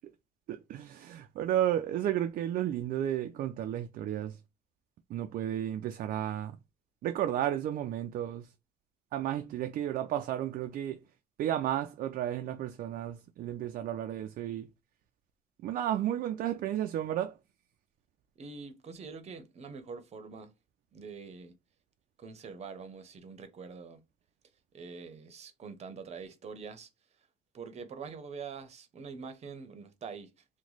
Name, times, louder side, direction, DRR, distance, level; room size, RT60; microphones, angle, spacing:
voice 1, 0.5-4.4 5.1-6.6 7.0-8.5 9.1-11.0 11.4-14.7 15.6-17.3, right 11 dB, 55° right, 0.4 m, -32 dB
voice 2, 18.4-20.5 20.9-21.5 22.2-24.0 24.7-26.9 27.5-30.3, right 5 dB, 40° right, 0.8 m, -44 dB
3.0 x 2.2 x 3.9 m
cardioid pair, 110°, 17 cm